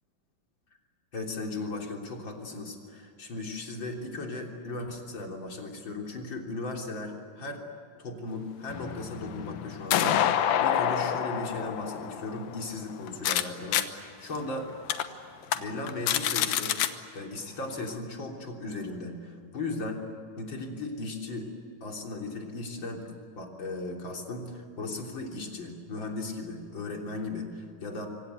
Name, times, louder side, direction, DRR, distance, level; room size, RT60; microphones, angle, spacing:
voice 1, 1.1-7.6 8.0-14.7 15.5-16.8 17.1-20.1 20.4-21.5 21.8-23.1 23.4-28.1, left 2 dB, 35° left, 1 dB, 3.8 m, -37 dB
sound 1, 8.7-13.4 13.7-13.8 14.4-14.5 14.9-15.0 15.4-15.6 15.9-16.9, left 10 dB, 90° left, 2.9 m, -27 dB
26.5 x 25.0 x 8.2 m, 2.5 s
omnidirectional pair, 4.0 m